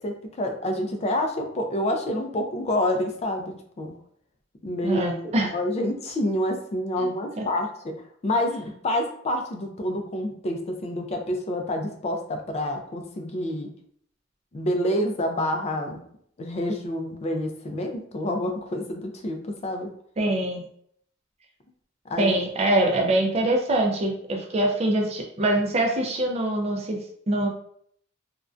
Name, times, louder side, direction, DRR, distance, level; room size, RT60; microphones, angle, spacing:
voice 1, 0.0-3.9 4.6-7.7 8.2-13.7 14.5-16.0 16.4-19.9 22.1-22.4, left 1 dB, 30° left, 4 dB, 0.3 m, -28 dB
voice 2, 4.8-5.5 7.0-7.1 7.4-7.5 20.2-20.6 22.2-27.0 27.3-27.5, right 1 dB, 30° right, 1 dB, 0.4 m, -24 dB
2.5 x 2.1 x 2.3 m, 0.66 s
head